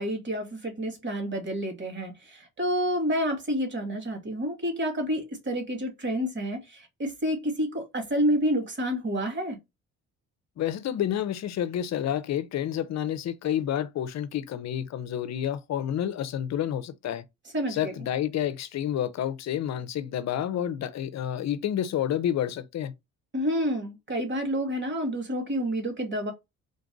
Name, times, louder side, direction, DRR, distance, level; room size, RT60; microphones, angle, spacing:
voice 1, 0.0-9.6 17.5-17.9 23.3-26.3, equal, 40° right, 2.1 m, -29 dB
voice 2, 10.6-17.2 17.7-22.9, left 10 dB, 60° left, 0.7 m, -29 dB
3.9 x 2.5 x 3.8 m
cardioid pair, 90°, 30 cm